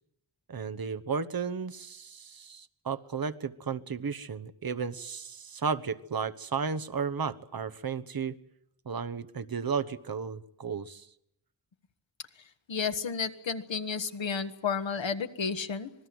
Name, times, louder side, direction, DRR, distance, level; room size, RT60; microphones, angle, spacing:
voice 1, 0.5-8.4 8.8-11.1, right 5 dB, 50° right, 12 dB, 1.2 m, -34 dB
voice 2, 12.7-15.9, left 6 dB, 75° left, 8 dB, 1.5 m, -32 dB
26.5 x 20.0 x 7.8 m, 0.75 s
wide cardioid pair, 90°, 46 cm